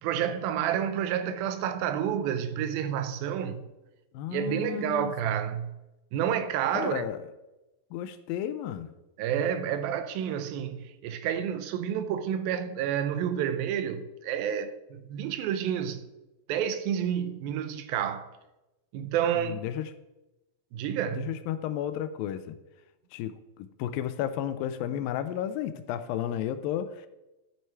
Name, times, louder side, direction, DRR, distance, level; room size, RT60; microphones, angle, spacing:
voice 1, 0.0-3.6 4.3-5.7 6.1-7.0 9.2-16.0 16.5-18.3 18.9-19.6 20.7-21.3, right 9 dB, 80° right, 2.4 m, -29 dB
voice 2, 4.1-5.1 6.7-7.3 7.9-8.9 19.4-19.9 21.1-22.6 23.1-27.1, left 10 dB, 80° left, 2.2 m, -33 dB
11.0 x 6.4 x 4.5 m
omnidirectional pair, 4.3 m